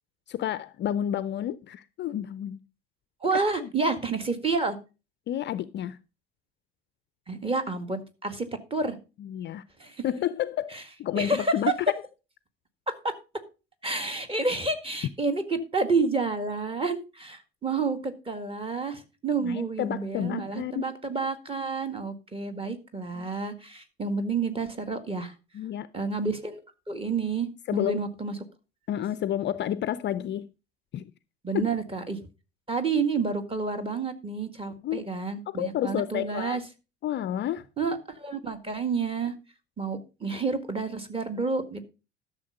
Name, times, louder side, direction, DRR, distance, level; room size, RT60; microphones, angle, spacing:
voice 1, 0.3-2.6 3.6-3.7 5.3-6.0 9.2-9.6 10.0-11.9 19.4-20.8 23.1-23.3 25.5-25.9 27.7-28.0 28.9-30.5 30.9-31.1 31.5-31.6 34.8-35.1 35.5-36.6 37.0-37.6, left 11 dB, 35° left, 0.5 m, -30 dB
voice 2, 3.2-4.8 7.3-9.0 9.8-10.0 10.7-10.8 11.2-11.6 12.9-13.1 13.8-25.3 25.9-26.6 26.9-28.4 31.4-32.2 32.7-36.6 37.8-39.3 39.8-41.8, right 4 dB, 15° right, 1.9 m, -29 dB
12.0 x 6.8 x 5.2 m
figure-of-eight pair, 65°, 32 cm